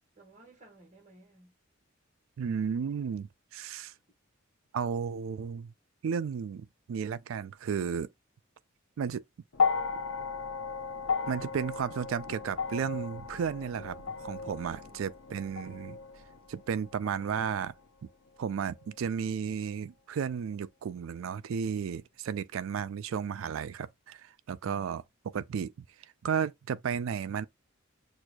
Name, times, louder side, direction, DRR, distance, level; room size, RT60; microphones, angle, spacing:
voice 1, 0.1-1.5 14.6-15.2 15.6-15.9, right 1 dB, 35° right, 1.6 m, -57 dB
voice 2, 2.4-3.9 4.7-5.7 6.0-8.1 9.0-9.2 11.3-14.0 14.2-16.0 16.5-17.7 18.4-24.2 24.5-25.0 25.3-25.9 26.2-27.5, right 7 dB, 75° right, 0.3 m, -33 dB
sound 1, 9.5-17.9 18.9-19.0, left 5 dB, 85° left, 0.7 m, -35 dB
6.2 x 2.5 x 2.2 m
head